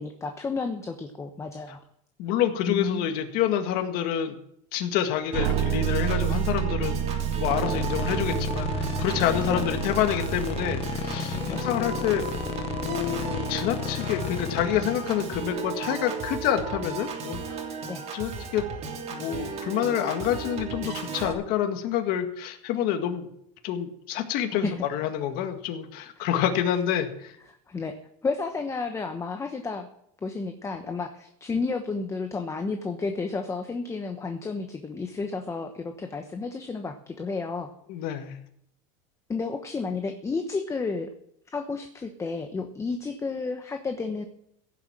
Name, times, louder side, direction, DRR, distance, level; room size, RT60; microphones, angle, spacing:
voice 1, 0.0-1.8 2.7-3.1 5.4-5.5 7.7-7.8 9.4-9.6 11.5-11.6 17.9-18.0 24.5-24.7 27.4-28.0 28.2-29.9 30.2-37.7 39.3-41.1 41.5-44.2, left 4 dB, 15° left, 6 dB, 1.1 m, -32 dB
voice 2, 2.2-4.4 4.7-12.3 12.8-17.4 18.1-18.6 19.1-23.3 23.6-27.3 37.9-38.3, left 10 dB, 55° left, 6 dB, 1.9 m, -28 dB
Piano / Organ, 5.3-21.3, right 5 dB, 35° right, 3.1 m, -35 dB
sound 1, 5.3-12.3, right 9 dB, 75° right, 1.1 m, -30 dB
sound 2, 7.4-16.6, left 10 dB, 35° left, 0.8 m, -34 dB
16.5 x 7.4 x 7.5 m, 0.73 s
supercardioid pair, 135°, 18 cm